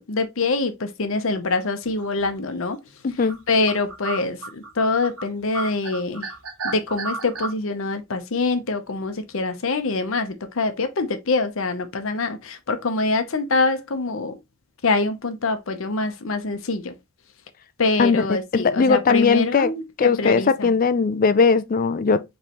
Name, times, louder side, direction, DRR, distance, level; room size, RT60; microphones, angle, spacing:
voice 1, 0.1-2.8 3.5-6.3 6.6-14.4 14.8-16.9 17.8-20.7, left 3 dB, 60° left, 0.7 m, -24 dB
sound 1, 2.0-2.4 2.9-3.0 3.3-5.3 5.5-7.5, right 3 dB, 75° right, 1.3 m, -32 dB
voice 2, 3.0-3.4 18.0-19.7 20.0-22.2, left 5 dB, 40° left, 0.4 m, -19 dB
5.3 x 3.2 x 2.9 m
head